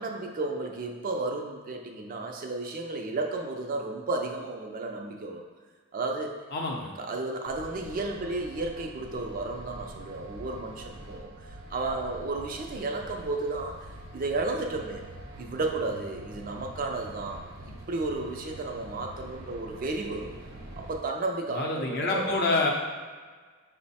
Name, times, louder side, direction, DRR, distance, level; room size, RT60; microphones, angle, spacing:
voice 1, 0.0-5.4 5.9-6.4 7.0-13.8 14.1-15.0 15.4-20.3 20.8-22.3, right 3 dB, 40° right, 2 dB, 0.4 m, -33 dB
voice 2, 6.5-6.9 21.5-22.7, left 2 dB, 50° left, -1 dB, 0.6 m, -27 dB
sound 1, 7.4-21.0, right 1 dB, 90° right, 0.7 m, -45 dB
5.3 x 2.1 x 4.1 m, 1.5 s
head